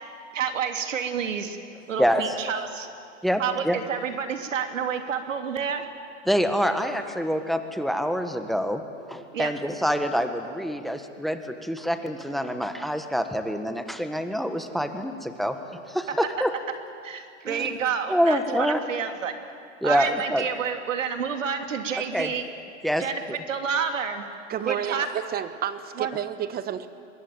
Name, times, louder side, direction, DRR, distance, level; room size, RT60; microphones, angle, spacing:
voice 1, 0.3-1.6 1.9-2.9 3.4-5.9 9.3-9.5 17.0-19.4 19.8-22.5 23.0-23.2 23.5-24.2 24.6-25.1 26.0-26.2, right 7 dB, 85° right, 6 dB, 2.6 m, -29 dB
voice 2, 2.0-2.3 3.2-3.8 6.3-8.8 9.1-15.6 15.9-16.5 17.5-17.7 18.1-18.8 19.8-20.4 22.1-22.3 22.8-23.4, equal, ahead, 8 dB, 1.5 m, -26 dB
voice 3, 24.5-26.9, right 10 dB, 25° right, 13 dB, 1.2 m, -30 dB
24.0 x 21.5 x 9.0 m, 2.4 s
hypercardioid pair, 120°, 37 cm